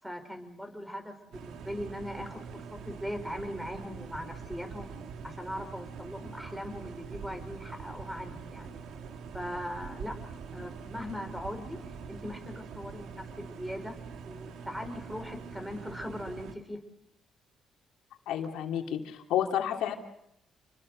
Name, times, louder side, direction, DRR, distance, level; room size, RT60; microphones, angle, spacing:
voice 1, 0.0-4.9 5.2-8.7 9.3-10.2 10.5-11.8 12.1-14.0 14.3-16.8, equal, 5° right, 8 dB, 5.1 m, -40 dB
sound 1, 1.3-16.5, right 5 dB, 80° right, 2.5 m, -44 dB
voice 2, 18.3-19.9, left 10 dB, 90° left, 3 dB, 3.1 m, -30 dB
29.5 x 22.0 x 6.7 m, 0.78 s
cardioid pair, 90°, 0 cm